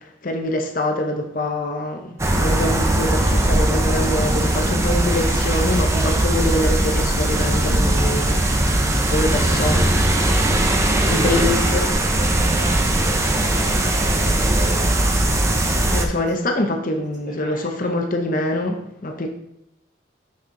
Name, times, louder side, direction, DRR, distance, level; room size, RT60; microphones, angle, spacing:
voice 1, 0.0-9.9 11.0-11.9 15.9-19.3, left 1 dB, 45° left, 4 dB, 0.7 m, -25 dB
sound 1, 2.2-16.1, right 1 dB, 15° right, 0.6 m, -19 dB
voice 2, 7.7-8.0 10.6-15.1 16.2-16.3 17.3-17.9, right 1 dB, 40° right, -4 dB, 2.0 m, -35 dB
6.2 x 5.5 x 3.7 m, 0.83 s
head